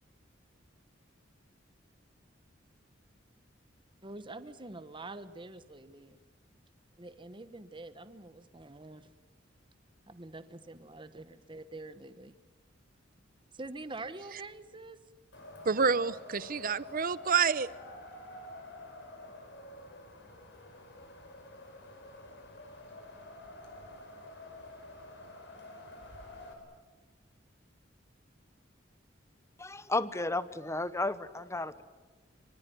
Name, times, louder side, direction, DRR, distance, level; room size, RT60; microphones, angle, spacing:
voice 1, 4.0-6.2 7.0-9.1 10.1-12.3 13.5-15.0, right 2 dB, 25° right, 12 dB, 1.2 m, -45 dB
Wind, 15.3-26.5, left 1 dB, 65° left, 5.4 m, -49 dB
voice 2, 15.6-17.7, right 6 dB, 50° right, 18 dB, 0.8 m, -28 dB
voice 3, 29.6-31.8, left 2 dB, 15° left, 15 dB, 1.0 m, -33 dB
24.5 x 24.5 x 9.3 m, 1.3 s
head